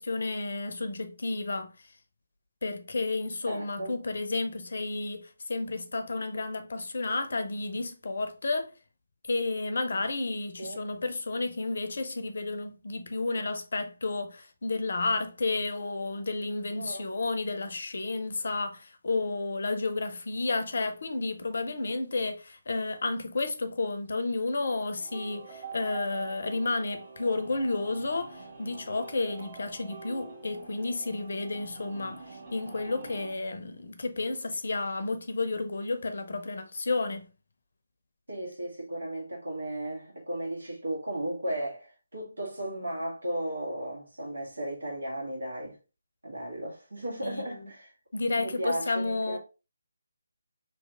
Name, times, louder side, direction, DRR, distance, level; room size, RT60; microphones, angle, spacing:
voice 1, 0.0-1.7 2.6-8.7 9.3-37.3 47.2-47.7 48.1-49.4, left 3 dB, 55° left, 0.6 m, -31 dB
voice 2, 3.5-4.0 10.6-10.9 16.8-17.0 38.3-45.8 46.2-47.9 48.4-49.4, right 1 dB, 75° right, 1.9 m, -35 dB
sound 1, 25.0-33.3, right 4 dB, 40° right, 1.3 m, -45 dB
3.3 x 2.8 x 3.7 m
figure-of-eight pair, 150°, 0 cm